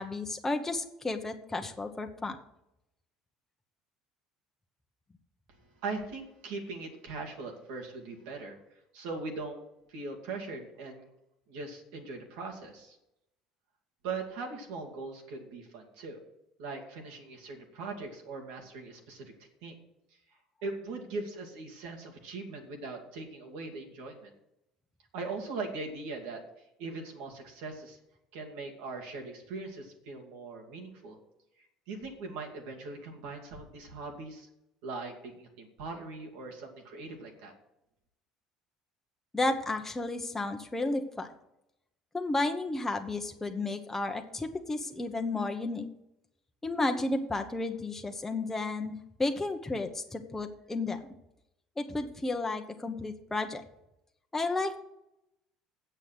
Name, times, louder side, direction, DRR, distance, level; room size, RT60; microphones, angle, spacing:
voice 1, 0.0-2.4 39.3-41.3 42.1-45.8 46.6-51.0 51.8-53.6 54.3-54.8, left 2 dB, 15° left, 4 dB, 1.2 m, -32 dB
voice 2, 5.8-8.6 8.9-9.6 9.9-11.1 11.5-13.0 14.0-16.2 16.6-19.3 19.6-19.8 20.6-24.3 25.1-26.4 26.8-28.0 28.3-31.2 31.6-34.5 34.8-37.5, right 3 dB, 65° right, 1 dB, 2.0 m, -40 dB
8.3 x 7.8 x 7.9 m, 0.83 s
figure-of-eight pair, 60°, 2 cm